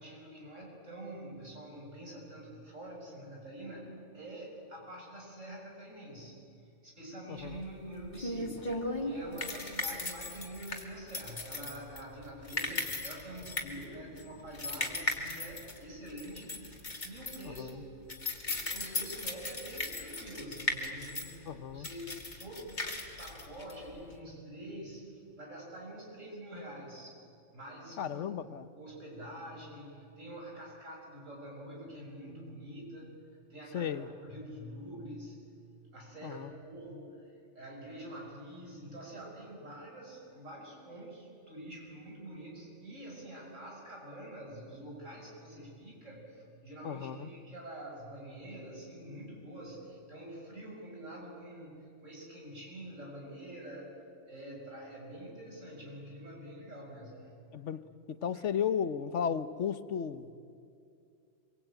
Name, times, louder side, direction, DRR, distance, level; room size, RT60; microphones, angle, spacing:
voice 1, 0.0-6.5 6.8-17.9 18.5-27.2 27.5-28.2 28.8-33.1 33.5-35.4 35.9-57.4 58.3-58.5, right 1 dB, 80° right, -1 dB, 7.0 m, -46 dB
voice 2, 7.3-7.6 17.4-17.8 21.5-21.9 28.0-28.7 33.7-34.1 36.2-36.5 46.8-47.3 57.5-57.8 58.1-60.4, left 8 dB, 70° left, 13 dB, 1.3 m, -35 dB
sound 1, 7.5-24.2, left 2 dB, 35° left, 2.7 m, -38 dB
25.5 x 23.5 x 9.0 m, 2.4 s
omnidirectional pair, 1.3 m